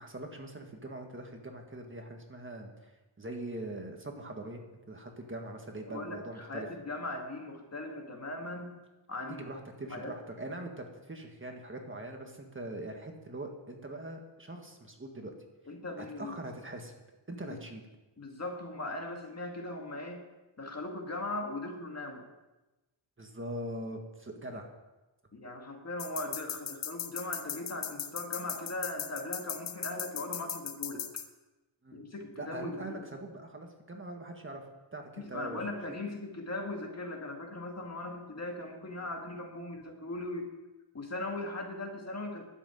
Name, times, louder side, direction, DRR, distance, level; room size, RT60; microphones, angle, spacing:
voice 1, 0.0-2.9 3.2-6.7 9.3-15.4 16.0-16.9 17.3-17.8 23.2-24.7 31.8-32.0 32.4-34.6 34.9-35.6 35.9-36.0, right 1 dB, 25° right, 2 dB, 1.7 m, -42 dB
voice 2, 5.8-8.8 9.1-9.6 9.9-10.2 15.7-16.4 17.5-17.6 18.2-20.3 20.6-22.3 24.5-24.6 25.3-31.1 31.9-33.1 35.2-40.5 40.9-42.4, left 2 dB, 30° left, 2 dB, 2.1 m, -39 dB
sound 1, 26.0-31.2, left 9 dB, 90° left, 1.2 m, -37 dB
12.0 x 8.1 x 9.0 m, 1.1 s
wide cardioid pair, 130°, 49 cm